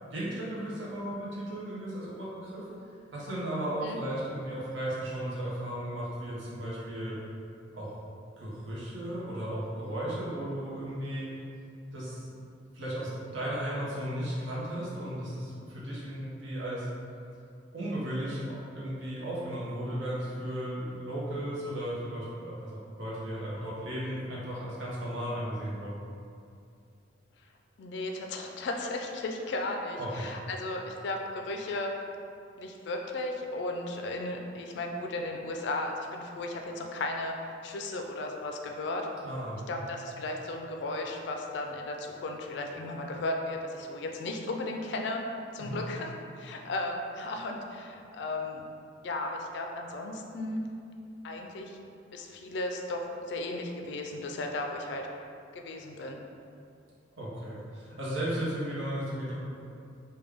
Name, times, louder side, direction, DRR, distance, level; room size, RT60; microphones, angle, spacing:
voice 1, 0.0-2.7 3.1-7.2 7.7-7.9 8.4-11.3 11.9-12.3 12.7-16.9 17.7-26.0 30.0-30.3 39.2-39.7 45.6-45.8 57.2-59.3, right 1 dB, 75° right, -7 dB, 0.7 m, -35 dB
voice 2, 27.8-31.9 32.6-37.3 37.6-39.1 39.7-45.2 45.5-48.6 49.0-50.7 51.2-51.8 52.1-55.1 55.5-56.2, left 2 dB, 60° left, 2 dB, 0.3 m, -35 dB
3.4 x 2.2 x 3.4 m, 2.5 s
head